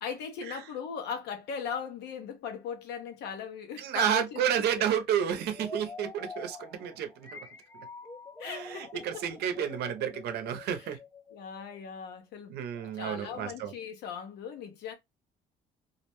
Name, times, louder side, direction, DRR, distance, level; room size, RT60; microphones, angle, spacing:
voice 1, 0.0-4.4 8.4-9.2 10.6-11.0 11.3-14.9, left 7 dB, 80° left, 0.8 m, -39 dB
voice 2, 3.8-7.5 8.4-11.0 12.5-13.7, right 9 dB, 75° right, 0.7 m, -31 dB
sound 1, 5.5-12.2, left 3 dB, 15° left, 0.4 m, -47 dB
2.5 x 2.1 x 2.9 m
cardioid pair, 110°, 17 cm